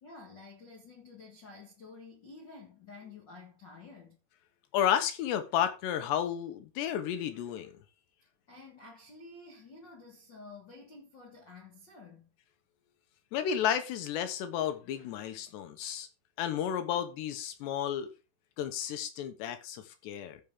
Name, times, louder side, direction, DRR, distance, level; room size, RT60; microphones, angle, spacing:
voice 1, 0.0-4.2 8.5-12.3, left 3 dB, 50° left, 1.4 m, -51 dB
voice 2, 4.7-7.7 13.3-16.1 16.4-18.1 18.6-20.4, left 9 dB, 85° left, 3.4 m, -32 dB
14.5 x 6.5 x 3.7 m
omnidirectional pair, 4.8 m